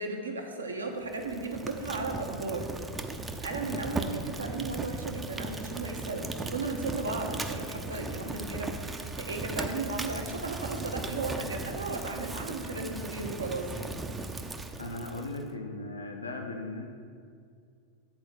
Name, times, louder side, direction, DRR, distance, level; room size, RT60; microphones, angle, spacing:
voice 1, 0.0-2.7 3.4-14.0, right 3 dB, 75° right, 3 dB, 0.9 m, -35 dB
Fire, 1.0-15.4, right 2 dB, 10° right, 0.5 m, -37 dB
voice 2, 3.6-4.0 14.8-16.9, left 2 dB, 80° left, 3 dB, 0.8 m, -38 dB
8.3 x 4.3 x 6.6 m, 2.2 s
figure-of-eight pair, 90°, 0 cm